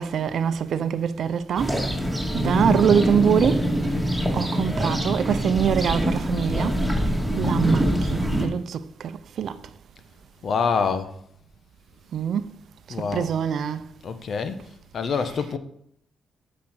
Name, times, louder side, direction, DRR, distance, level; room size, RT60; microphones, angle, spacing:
voice 1, 0.0-1.8 2.3-3.7 4.3-6.8 7.3-9.6 12.1-12.5 13.1-13.9, right 8 dB, 70° right, 0.6 m, -24 dB
sound 1, 1.6-8.5, equal, 5° right, 2.6 m, -24 dB
voice 2, 10.4-11.1 12.9-13.3 14.0-14.6 14.9-15.6, left 5 dB, 60° left, 1.1 m, -26 dB
8.6 x 6.1 x 6.1 m
supercardioid pair, 55°, 0 cm